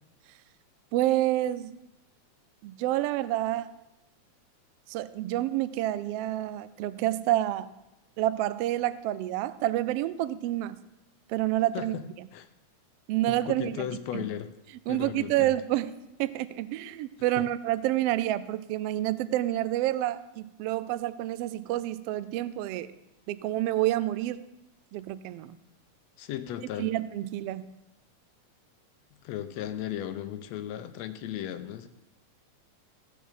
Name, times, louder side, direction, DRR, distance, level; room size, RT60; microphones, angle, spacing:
voice 1, 0.9-1.7 2.6-3.7 4.9-7.7 8.2-10.8 11.3-11.9 13.1-13.9 14.1-14.2 14.9-15.9 16.2-22.9 23.3-24.4 24.9-25.6 26.8-27.6, right 14 dB, 90° right, 14 dB, 1.3 m, -28 dB
voice 2, 13.3-14.5 14.9-15.5 17.3-17.4 26.2-26.9 29.2-31.9, left 11 dB, 75° left, 10 dB, 1.8 m, -36 dB
16.5 x 6.6 x 5.1 m, 0.90 s
omnidirectional pair, 3.3 m